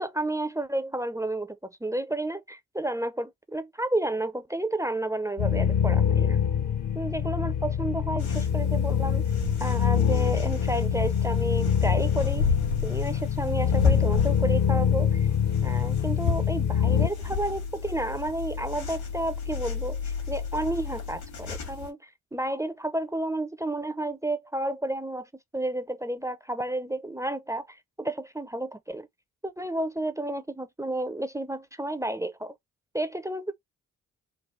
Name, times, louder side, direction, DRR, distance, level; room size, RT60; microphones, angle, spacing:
voice 1, 0.0-6.4 6.9-9.3 9.6-12.4 12.8-15.3 15.6-29.1 29.4-32.5 32.9-33.5, right 1 dB, 10° right, 0.5 m, -31 dB
sound 1, 5.4-17.1, left 8 dB, 55° left, 0.8 m, -25 dB
sound 2, 8.2-21.9, left 4 dB, 75° left, 1.9 m, -33 dB
3.9 x 2.3 x 3.1 m
hypercardioid pair, 50°, 37 cm